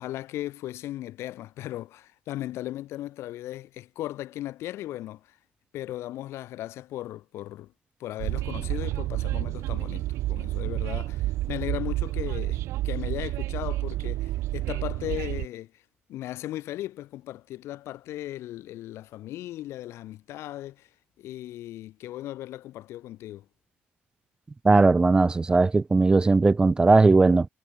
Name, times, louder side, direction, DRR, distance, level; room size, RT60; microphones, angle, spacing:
voice 1, 0.0-5.4 5.7-7.7 8.0-15.8 16.1-20.9 21.2-23.4, left 14 dB, 70° left, 4.8 m, -37 dB
Train, 8.2-15.5, right 16 dB, 75° right, 4.1 m, -30 dB
voice 2, 24.6-27.5, right 3 dB, 20° right, 0.4 m, -18 dB
cardioid pair, 105°, 5 cm